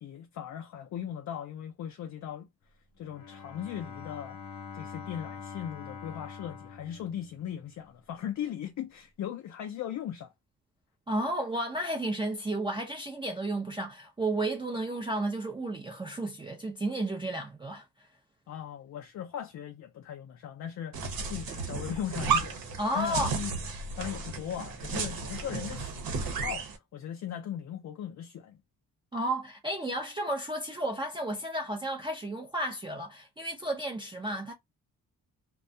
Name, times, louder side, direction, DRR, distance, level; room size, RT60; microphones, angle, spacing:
voice 1, 0.0-2.5 3.0-4.4 4.7-10.3 18.5-22.6 22.9-28.6, left 10 dB, 55° left, 0.4 m, -38 dB
Bowed string instrument, 3.0-7.9, left 6 dB, 70° left, 0.8 m, -45 dB
voice 2, 11.1-17.8 22.8-23.3 29.1-34.5, right 1 dB, 15° right, 0.4 m, -32 dB
sound 1, 20.9-26.8, right 5 dB, 80° right, 0.9 m, -33 dB
2.3 x 2.2 x 2.5 m
cardioid pair, 135°, 35 cm